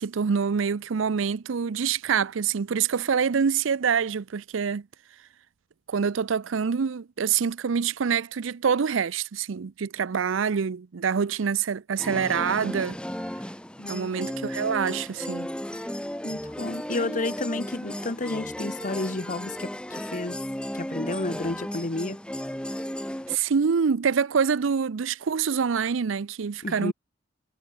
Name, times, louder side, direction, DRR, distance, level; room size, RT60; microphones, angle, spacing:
voice 1, 0.0-4.9 5.9-13.0 13.9-15.5 16.9-17.2 23.3-26.9, right 6 dB, 80° right, 0.5 m, -26 dB
sound 1, 12.0-23.4, equal, 5° left, 1.2 m, -34 dB
voice 2, 13.8-14.1 16.2-20.4 20.7-22.2 26.6-26.9, left 2 dB, 40° left, 1.2 m, -31 dB
head